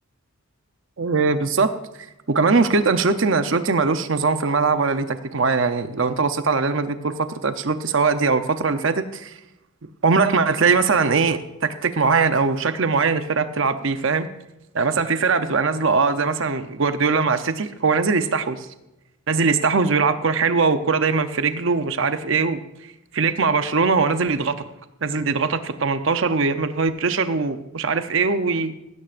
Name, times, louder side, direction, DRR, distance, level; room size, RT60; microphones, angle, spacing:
voice 1, 1.0-1.7 2.3-9.3 10.0-14.3 14.7-18.7 19.3-22.6 23.1-24.5 25.0-28.7, right 4 dB, 60° right, 10 dB, 0.7 m, -21 dB
16.0 x 13.0 x 2.6 m, 0.93 s
head